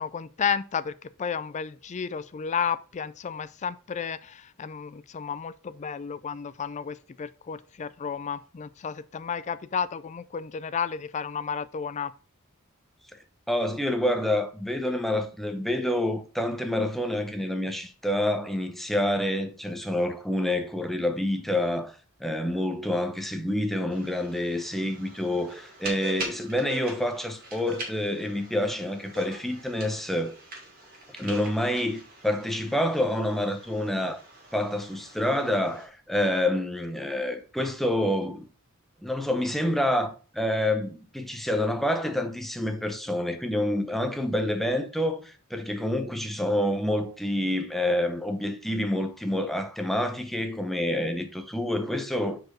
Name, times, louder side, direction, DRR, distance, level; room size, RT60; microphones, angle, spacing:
voice 1, 0.0-12.1, left 7 dB, 35° left, 0.4 m, -32 dB
voice 2, 13.5-30.4 31.2-34.2 34.5-38.5 39.0-52.4, left 1 dB, ahead, 0.8 m, -28 dB
sound 1, 23.9-35.9, right 2 dB, 45° right, 2.6 m, -42 dB
4.8 x 4.6 x 6.0 m
head